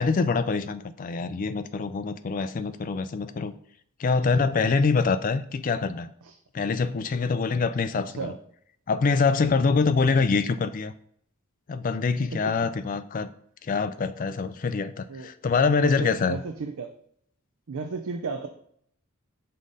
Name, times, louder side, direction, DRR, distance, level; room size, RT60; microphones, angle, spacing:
voice 1, 0.0-3.5 4.0-6.1 6.5-8.3 8.9-10.9 11.7-13.3 13.6-16.4, left 4 dB, 35° left, 12 dB, 0.3 m, -25 dB
voice 2, 15.6-16.9 17.7-18.5, right 4 dB, 70° right, 5 dB, 0.5 m, -34 dB
5.6 x 4.8 x 4.0 m, 0.65 s
head